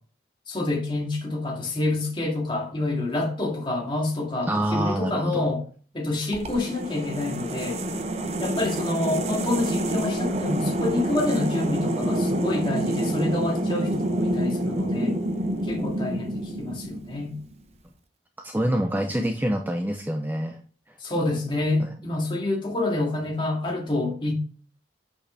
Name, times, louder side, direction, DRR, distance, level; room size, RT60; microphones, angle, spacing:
voice 1, 0.5-5.6 5.9-7.8 8.4-15.2 15.6-17.3 21.0-24.3, left 2 dB, 25° left, 2.1 m, -27 dB
voice 2, 4.5-5.5 18.4-20.6 21.8-21.9, right 1 dB, 10° right, 0.6 m, -26 dB
sound 1, 6.3-17.4, right 1 dB, 35° right, 0.8 m, -27 dB
7.8 x 6.4 x 3.3 m
head